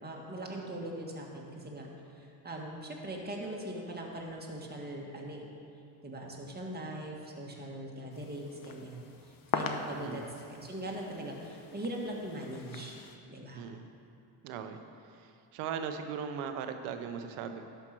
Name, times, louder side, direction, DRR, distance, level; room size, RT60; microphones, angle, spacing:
voice 1, 0.0-5.4 6.0-10.2 10.5-13.0 13.3-13.6, right 1 dB, 20° right, -1 dB, 1.9 m, -41 dB
sound 1, 8.1-13.2, left 5 dB, 45° left, 0.9 m, -41 dB
voice 2, 13.5-13.9 14.4-14.8 15.1-17.6, right 7 dB, 85° right, 7 dB, 0.9 m, -39 dB
11.0 x 5.9 x 6.1 m, 2.6 s
supercardioid pair, 85°, 49 cm